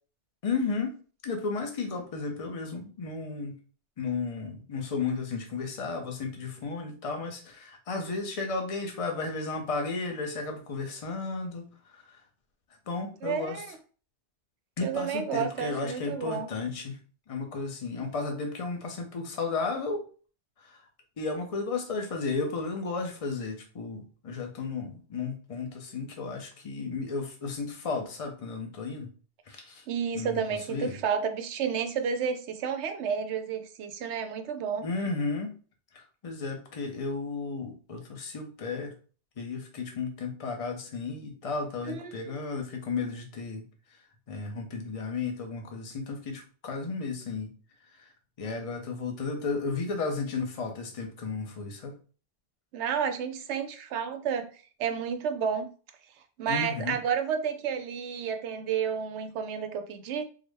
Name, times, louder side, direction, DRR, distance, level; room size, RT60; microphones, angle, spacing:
voice 1, 0.4-0.9 1.2-3.5 4.0-11.7 12.9-13.6 14.8-17.0 17.3-20.0 21.2-29.1 29.5-29.8 30.1-30.9 34.8-35.5 35.9-38.9 39.4-43.6 44.3-47.5 48.4-52.0 56.5-57.0, left 4 dB, 40° left, 3 dB, 0.7 m, -33 dB
voice 2, 13.2-13.8 14.8-16.5 29.9-34.9 41.8-42.4 52.7-54.5 54.8-55.7 56.4-60.3, right 7 dB, 90° right, 7 dB, 0.9 m, -31 dB
3.7 x 2.1 x 3.3 m, 0.39 s
omnidirectional pair, 1.1 m